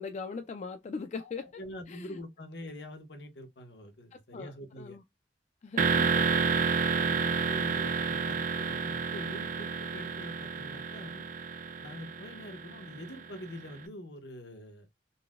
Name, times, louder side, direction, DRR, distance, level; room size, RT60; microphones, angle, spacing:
voice 1, 0.0-1.5 1.9-2.1 4.1-4.5 4.8-5.0 5.6-6.5, left 4 dB, 40° left, 0.3 m, -40 dB
voice 2, 1.2-5.0 7.0-11.2 11.8-14.9, left 1 dB, 75° left, 0.9 m, -45 dB
sound 1, 5.8-13.6, right 5 dB, 50° right, 0.4 m, -30 dB
4.0 x 2.1 x 2.2 m
head